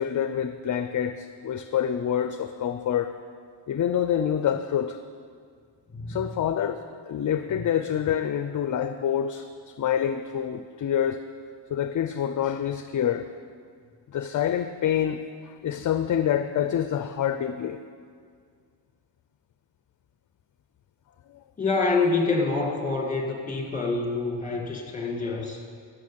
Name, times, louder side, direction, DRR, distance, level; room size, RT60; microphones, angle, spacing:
voice 1, 0.0-3.1 3.7-5.0 6.1-6.8 7.1-11.2 11.7-13.3 14.1-17.8, left 9 dB, 45° left, 9 dB, 0.5 m, -27 dB
voice 2, 5.9-6.3 7.5-7.6 21.6-25.6, left 3 dB, 15° left, 1 dB, 2.0 m, -27 dB
15.5 x 6.4 x 7.4 m, 2.1 s
wide cardioid pair, 145°, 44 cm